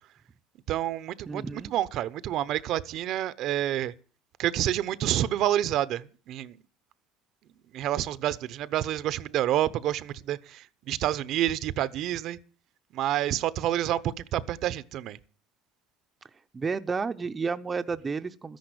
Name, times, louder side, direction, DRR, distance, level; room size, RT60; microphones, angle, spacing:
voice 1, 0.7-3.9 4.4-6.6 7.7-12.4 12.9-15.2, right 12 dB, 60° right, 0.8 m, -28 dB
voice 2, 1.3-1.7 16.5-18.6, right 5 dB, 25° right, 0.7 m, -31 dB
13.5 x 10.5 x 7.9 m
supercardioid pair, 115°, 0 cm